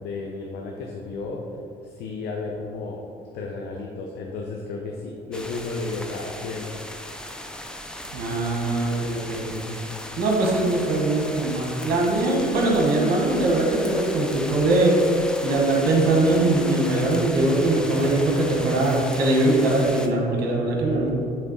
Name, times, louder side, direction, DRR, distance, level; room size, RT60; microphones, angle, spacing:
voice 1, 0.0-1.4 1.8-3.0 3.3-6.7, left 3 dB, 80° left, -1 dB, 0.7 m, -33 dB
sound 1, 5.3-20.1, left 1 dB, 5° left, 0.5 m, -37 dB
voice 2, 8.1-9.6 10.2-15.0 15.4-21.1, right 2 dB, 70° right, -1 dB, 1.4 m, -21 dB
7.4 x 3.4 x 4.1 m, 2.5 s
cardioid pair, 110°, 17 cm